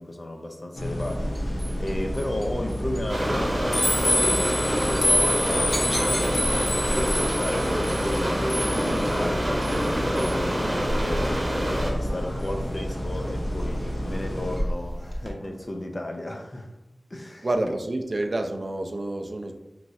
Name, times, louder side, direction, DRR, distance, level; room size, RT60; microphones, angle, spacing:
voice 1, 0.0-16.7 17.1-17.5, left 1 dB, 40° left, 0.4 m, -34 dB
sound 1, 0.8-14.6, left 1 dB, 80° left, 0.6 m, -28 dB
sound 2, 1.1-15.3, equal, 25° left, 0.8 m, -34 dB
sound 3, 3.1-11.9, equal, 30° right, 0.8 m, -27 dB
voice 2, 17.4-19.5, right 2 dB, 50° right, 0.3 m, -28 dB
3.0 x 2.4 x 2.6 m
wide cardioid pair, 60°, 0 cm